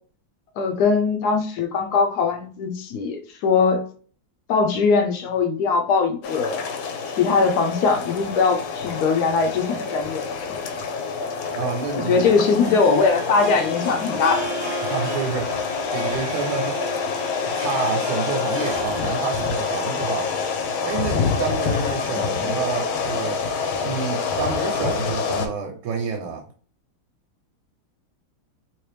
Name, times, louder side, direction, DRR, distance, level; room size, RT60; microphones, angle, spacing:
voice 1, 0.6-3.9 4.5-6.6 7.2-10.2 11.9-14.5 22.0-22.5, left 5 dB, 70° left, 1.0 m, -21 dB
sound 1, 6.2-25.5, left 5 dB, 85° left, 1.4 m, -27 dB
Harp, 11.2-21.6, right 5 dB, 65° right, 0.8 m, -37 dB
voice 2, 11.5-12.4 14.8-17.0 17.4-20.3 20.8-23.4 23.8-26.4, right 5 dB, 80° right, 1.3 m, -29 dB
3.2 x 3.0 x 3.2 m
omnidirectional pair, 2.2 m